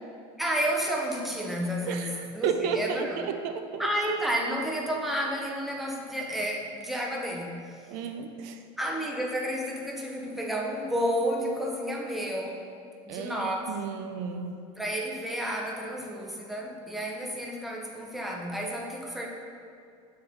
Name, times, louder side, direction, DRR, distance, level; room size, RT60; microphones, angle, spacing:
voice 1, 0.4-3.2 3.8-7.8 8.8-12.6 13.0-13.7 14.8-19.3, equal, ahead, -1 dB, 0.7 m, -31 dB
voice 2, 1.9-3.9 7.9-8.6 13.1-14.6, right 6 dB, 85° right, 7 dB, 0.5 m, -33 dB
5.7 x 4.4 x 5.1 m, 2.4 s
cardioid pair, 150°, 13 cm